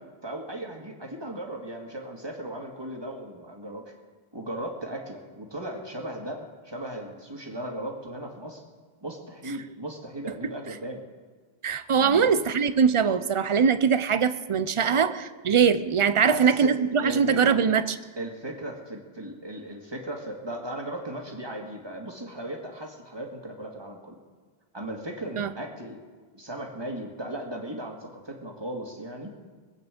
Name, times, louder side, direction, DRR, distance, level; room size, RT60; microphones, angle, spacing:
voice 1, 0.2-3.9 4.3-8.6 9.0-11.0 12.0-12.3 14.8-15.0 16.2-16.7 17.0-17.6 18.2-24.2 24.7-26.0 26.3-29.3, right 1 dB, 25° right, 1 dB, 2.1 m, -36 dB
voice 2, 11.6-15.1 15.5-17.8 25.4-25.5, right 6 dB, 40° right, 13 dB, 0.5 m, -22 dB
23.0 x 8.6 x 5.2 m, 1.5 s
omnidirectional pair, 1.1 m